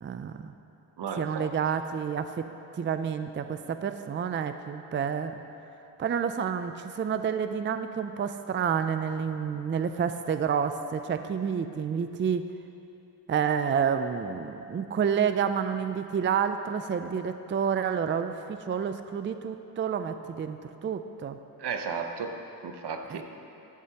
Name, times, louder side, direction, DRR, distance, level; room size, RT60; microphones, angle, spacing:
voice 1, 0.0-0.5 1.2-2.5 2.8-5.4 6.0-12.4 13.3-20.6 20.8-21.4 23.1-23.2, right 7 dB, 30° right, 9 dB, 0.4 m, -29 dB
voice 2, 1.0-1.5 21.6-22.4 22.6-23.2, right 5 dB, 75° right, 5 dB, 0.9 m, -34 dB
12.0 x 11.5 x 2.9 m, 2.8 s
cardioid pair, 85°, 41 cm